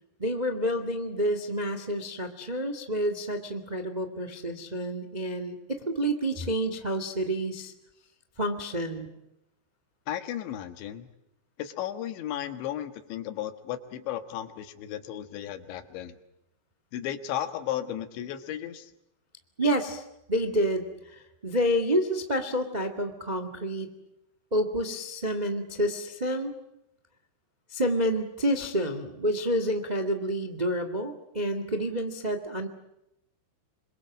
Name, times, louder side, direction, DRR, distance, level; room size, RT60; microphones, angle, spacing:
voice 1, 0.2-7.7 8.4-9.1 19.6-23.9 24.5-26.5 27.7-32.7, equal, 55° right, 8 dB, 0.4 m, -29 dB
voice 2, 10.1-11.1 11.6-16.2 16.9-18.9, left 11 dB, 85° left, 10 dB, 3.9 m, -34 dB
27.5 x 25.0 x 7.5 m, 0.84 s
omnidirectional pair, 5.1 m